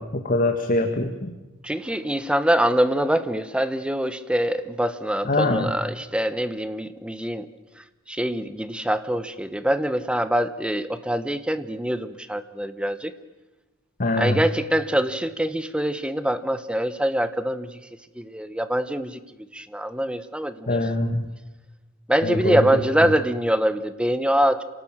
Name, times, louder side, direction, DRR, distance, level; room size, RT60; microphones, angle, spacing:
voice 1, 0.0-1.3 5.3-5.7 14.0-14.4 20.7-21.2 22.2-22.6, left 2 dB, 40° left, 5 dB, 1.7 m, -23 dB
voice 2, 1.6-7.5 7.8-13.1 14.2-17.8 18.1-19.2 19.5-20.9 22.1-24.6, right 1 dB, 5° right, 13 dB, 1.0 m, -24 dB
27.5 x 18.5 x 7.4 m, 1.1 s
head